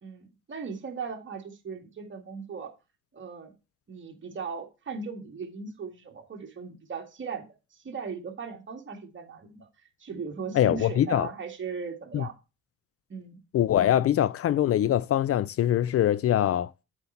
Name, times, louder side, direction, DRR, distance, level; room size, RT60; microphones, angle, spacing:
voice 1, 0.0-2.7 3.1-3.5 3.9-9.7 10.0-12.3 13.1-13.4, right 5 dB, 40° right, 2.1 m, -38 dB
voice 2, 10.5-11.3 12.1-12.2 13.5-16.7, left 11 dB, 50° left, 0.4 m, -23 dB
8.0 x 4.4 x 5.7 m
cardioid pair, 90°, 30 cm